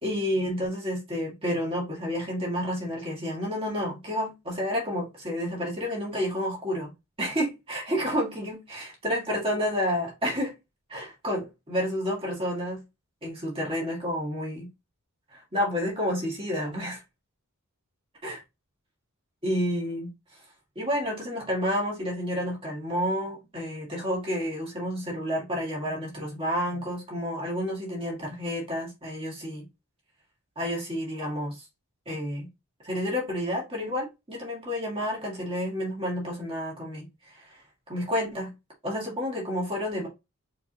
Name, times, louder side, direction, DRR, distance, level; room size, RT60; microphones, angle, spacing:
voice 1, 0.0-6.9 7.2-10.5 10.9-12.8 13.2-14.7 15.3-17.0 18.2-18.3 19.4-20.1 20.8-29.7 30.6-31.6 32.1-32.5 32.8-37.6 37.9-38.5 38.8-40.1, equal, 25° right, 2.0 m, -30 dB
4.6 x 3.8 x 2.9 m
head